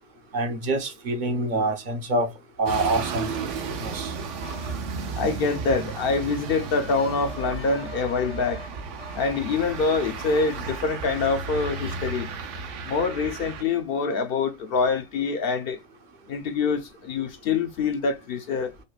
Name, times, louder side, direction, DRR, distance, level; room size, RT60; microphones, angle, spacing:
voice 1, 0.3-2.3 2.6-3.3 3.8-4.2, right 2 dB, 50° right, 0.7 m, -26 dB
sound 1, 2.7-13.6, right 4 dB, 80° right, 1.0 m, -34 dB
sound 2, 4.4-4.8 6.9-8.7 9.0-9.3, left 4 dB, 90° left, 1.1 m, -43 dB
voice 2, 5.2-8.6 9.2-12.3 12.8-15.8 16.3-18.7, left 4 dB, 60° left, 0.6 m, -25 dB
5.1 x 2.1 x 2.2 m
omnidirectional pair, 1.3 m